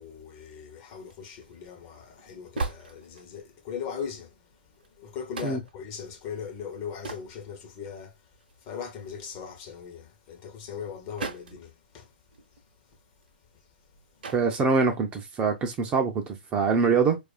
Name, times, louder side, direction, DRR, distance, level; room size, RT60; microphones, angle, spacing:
voice 1, 0.0-4.5 4.9-8.2 8.6-12.1, left 7 dB, 30° left, 0.8 m, -39 dB
sound 1, 0.9-3.6 4.1-4.2 4.6-4.9 5.4-5.8 6.6-7.3 7.8-7.9 8.3-9.9 10.7-11.7 12.0-12.1 12.3-13.9 14.2-14.5 15.5-15.9, right 3 dB, 60° right, 0.8 m, -40 dB
voice 2, 14.3-17.2, right 5 dB, 20° right, 0.5 m, -24 dB
4.6 x 2.4 x 2.2 m
figure-of-eight pair, 125°, 6 cm